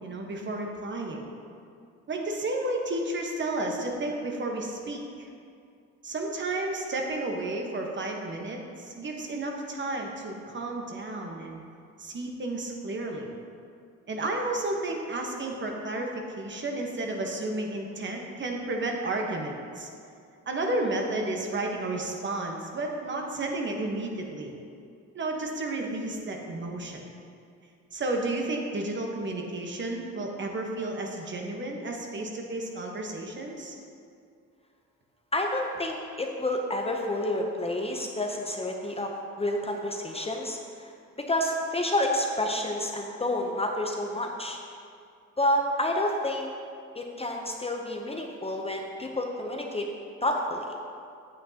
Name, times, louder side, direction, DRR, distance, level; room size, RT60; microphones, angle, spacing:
voice 1, 0.0-1.3 2.1-5.3 6.0-11.6 12.0-13.3 14.1-19.9 20.5-24.5 25.1-27.0 27.9-33.7, right 2 dB, 40° right, 1 dB, 1.2 m, -32 dB
voice 2, 35.3-39.1 39.4-40.9 41.3-44.6 45.4-46.5 46.9-49.8 50.2-50.7, left 1 dB, 20° left, 1 dB, 0.7 m, -29 dB
8.7 x 8.1 x 2.8 m, 2.4 s
cardioid pair, 90°, 30 cm